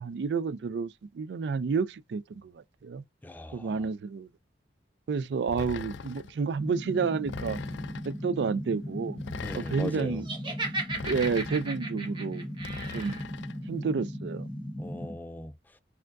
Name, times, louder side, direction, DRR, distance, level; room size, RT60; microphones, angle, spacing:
voice 1, 0.0-3.0 3.5-4.3 5.1-7.6 8.0-9.2 9.5-10.3 11.0-12.5 12.9-13.2 13.7-14.5, right 5 dB, 75° right, 0.4 m, -30 dB
voice 2, 3.2-3.7 9.4-10.2 14.8-15.5, left 1 dB, 10° left, 0.3 m, -38 dB
sound 1, 5.5-6.4 7.3-8.2 9.2-10.1 10.9-11.8 12.6-13.6, left 6 dB, 85° left, 0.4 m, -41 dB
sound 2, 6.6-15.2, equal, 35° left, 1.1 m, -38 dB
Laughter, 10.2-13.2, right 2 dB, 25° right, 1.3 m, -36 dB
4.5 x 3.6 x 2.5 m
head